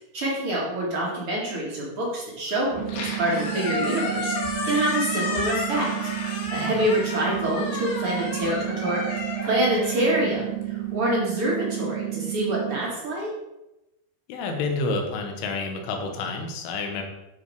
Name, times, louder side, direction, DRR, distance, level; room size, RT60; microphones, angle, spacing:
voice 1, 0.1-4.3 4.6-5.9 6.5-13.3, right 1 dB, 45° right, -4 dB, 1.8 m, -26 dB
Squeak, 2.7-11.0, left 3 dB, 65° left, 3.8 m, -32 dB
sound 1, 2.8-12.8, right 19 dB, 90° right, 3.2 m, -31 dB
voice 2, 14.3-17.0, left 3 dB, 80° left, 4 dB, 3.7 m, -29 dB
12.5 x 4.8 x 4.8 m, 0.93 s
omnidirectional pair, 5.5 m